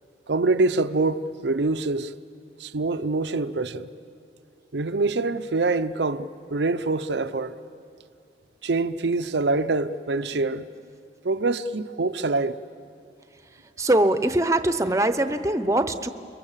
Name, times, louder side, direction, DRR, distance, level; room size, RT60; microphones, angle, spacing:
voice 1, 0.3-2.1 2.6-3.9 4.7-7.6 8.6-10.7 11.2-12.6, right 3 dB, 80° right, 0.7 m, -25 dB
voice 2, 13.8-16.1, right 1 dB, 20° right, 0.8 m, -22 dB
28.5 x 23.0 x 7.4 m
head